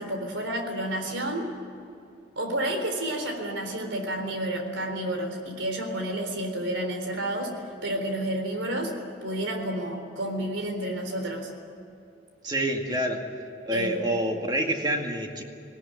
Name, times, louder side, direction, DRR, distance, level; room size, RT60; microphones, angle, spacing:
voice 1, 0.0-1.5 2.4-7.5 7.8-8.9 9.2-11.5 13.7-14.2, right 1 dB, 90° right, 5 dB, 3.8 m, -30 dB
voice 2, 12.4-13.2 13.7-15.4, right 1 dB, 20° right, 2 dB, 2.2 m, -27 dB
19.0 x 18.5 x 9.9 m, 2.7 s
head